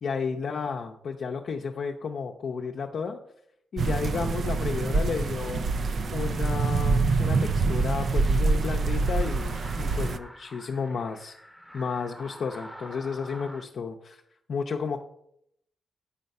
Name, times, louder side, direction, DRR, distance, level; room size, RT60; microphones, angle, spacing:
voice 1, 0.0-3.2 3.7-5.7 6.1-11.3 11.7-14.2 14.5-15.0, left 5 dB, 65° left, 2 dB, 0.6 m, -32 dB
sound 1, 3.8-10.2, right 3 dB, 55° right, 0.4 m, -25 dB
sound 2, 7.2-13.7, equal, ahead, 0.8 m, -47 dB
8.6 x 4.5 x 5.3 m, 0.75 s
cardioid pair, 100°, 0 cm